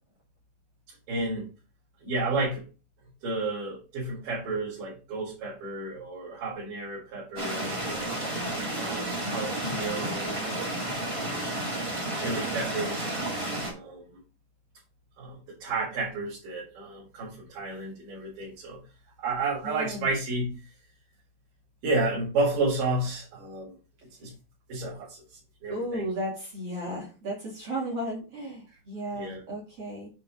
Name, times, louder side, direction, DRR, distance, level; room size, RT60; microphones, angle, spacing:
voice 1, 1.1-1.5 2.0-2.6 3.2-8.2 8.8-10.7 11.0-11.5 12.2-13.1 13.7-14.1 15.2-18.8 19.2-20.6 21.8-23.7 24.2-24.3 24.7-26.1 29.1-29.4, right 2 dB, 60° right, -7 dB, 5.1 m, -32 dB
sound 1, 7.4-13.7, right 1 dB, 15° right, 1.4 m, -31 dB
voice 2, 19.6-20.1 25.7-30.1, right 1 dB, 45° right, -4 dB, 3.1 m, -34 dB
8.9 x 4.5 x 5.1 m, 0.33 s
omnidirectional pair, 4.3 m